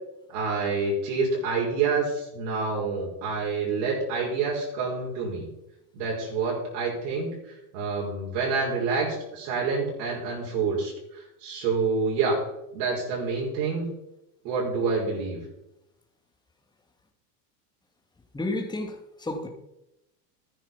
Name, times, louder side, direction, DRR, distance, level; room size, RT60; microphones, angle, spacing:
voice 1, 0.3-5.5 5.9-12.4 12.7-13.9 14.4-15.4, right 4 dB, 70° right, -4 dB, 5.8 m, -27 dB
voice 2, 18.3-19.5, left 2 dB, 10° left, 3 dB, 2.1 m, -31 dB
13.0 x 10.5 x 5.8 m, 0.89 s
supercardioid pair, 125°, 49 cm